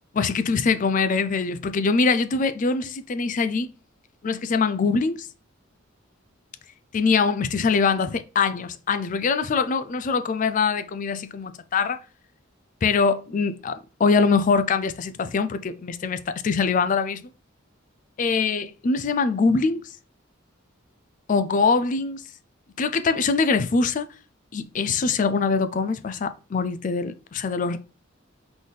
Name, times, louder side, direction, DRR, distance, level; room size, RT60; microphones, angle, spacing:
voice 1, 0.1-3.7 4.2-5.3 6.9-12.0 12.8-17.2 18.2-19.8 21.3-22.2 22.8-24.1 24.5-27.8, left 4 dB, 40° left, 0.4 m, -23 dB
4.0 x 4.0 x 3.2 m
head